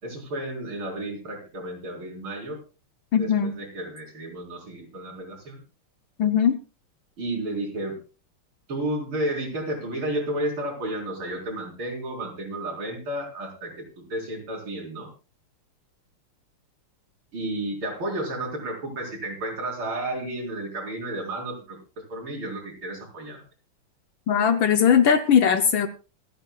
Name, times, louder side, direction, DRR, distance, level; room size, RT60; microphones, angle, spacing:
voice 1, 0.0-2.6 3.1-5.6 7.2-8.0 8.7-15.1 17.3-21.8 22.1-23.4, right 1 dB, 70° right, -2 dB, 5.2 m, -32 dB
voice 2, 3.1-3.5 6.2-6.6 24.3-25.9, left 7 dB, 70° left, 9 dB, 1.5 m, -19 dB
27.0 x 9.3 x 2.3 m, 0.31 s
omnidirectional pair, 2.4 m